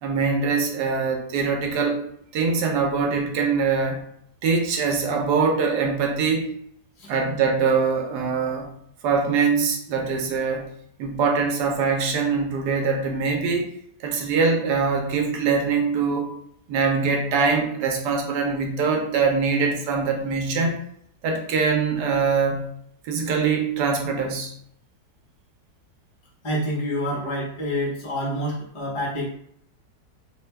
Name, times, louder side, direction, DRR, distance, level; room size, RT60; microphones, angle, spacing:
voice 1, 0.0-2.1 2.3-4.0 4.4-6.5 7.1-8.7 9.0-10.7 11.0-13.7 14.0-16.3 16.7-20.8 21.2-22.7 23.0-24.5, right 5 dB, 75° right, 2 dB, 1.2 m, -23 dB
voice 2, 26.4-29.3, equal, 45° left, -4 dB, 0.4 m, -27 dB
3.3 x 2.2 x 3.2 m, 0.67 s
omnidirectional pair, 1.8 m